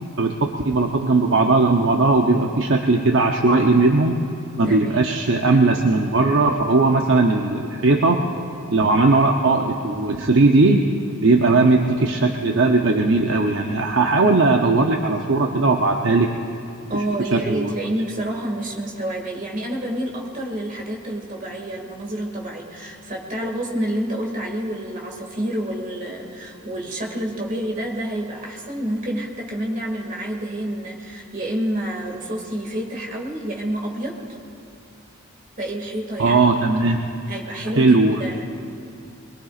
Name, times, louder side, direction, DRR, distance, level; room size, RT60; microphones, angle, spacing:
voice 1, 0.2-4.2 4.5-8.2 8.7-10.9 11.2-16.3 16.9-17.0 17.3-17.7 36.2-37.0 37.8-38.2, right 3 dB, 60° right, 2 dB, 0.7 m, -18 dB
voice 2, 4.6-5.0 16.9-34.2 35.6-36.4 37.3-38.5, right 1 dB, 35° right, -1 dB, 2.2 m, -28 dB
22.5 x 22.0 x 2.5 m, 2.7 s
head